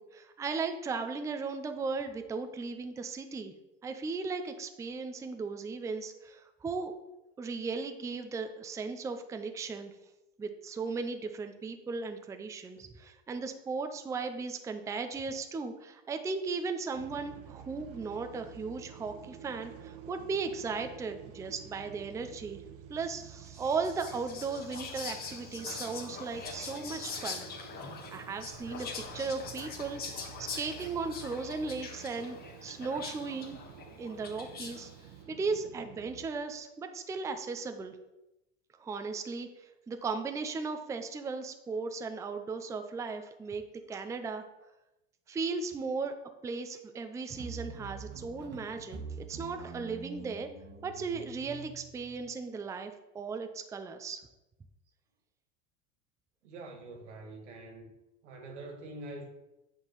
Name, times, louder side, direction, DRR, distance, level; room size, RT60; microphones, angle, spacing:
voice 1, 0.0-3.5 3.8-6.9 7.4-9.9 10.4-22.6 22.9-27.5 28.1-28.9 29.1-33.6 34.0-34.9 35.3-38.0 38.8-43.6 43.9-44.4 45.3-46.2 46.4-50.5 50.8-54.2, right 4 dB, 10° right, 0.5 m, -36 dB
sound 1, 16.9-36.3, right 9 dB, 60° right, 1.0 m, -50 dB
Whispering, 23.5-35.0, left 5 dB, 25° left, 1.6 m, -43 dB
sound 2, 47.3-52.3, right 4 dB, 30° right, 1.2 m, -45 dB
voice 2, 56.4-57.9 58.2-59.3, right 2 dB, 85° right, 2.0 m, -45 dB
8.8 x 3.8 x 6.6 m
supercardioid pair, 125°, 34 cm